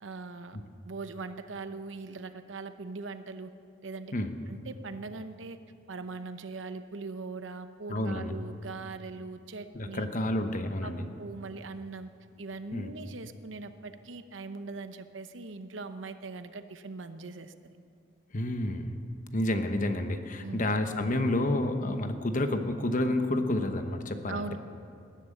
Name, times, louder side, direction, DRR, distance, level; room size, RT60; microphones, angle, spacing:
voice 1, 0.0-0.6 0.8-3.5 3.8-4.1 4.5-5.6 5.9-10.1 10.8-10.9 11.2-12.1 12.4-17.8 20.4-20.7 24.3-24.6, right 3 dB, 80° right, 10 dB, 0.8 m, -41 dB
voice 2, 7.9-8.3 9.7-11.0 12.7-12.9 18.3-18.9 19.3-24.4, left 1 dB, 45° left, 7 dB, 1.1 m, -29 dB
19.5 x 10.5 x 6.7 m, 2.5 s
head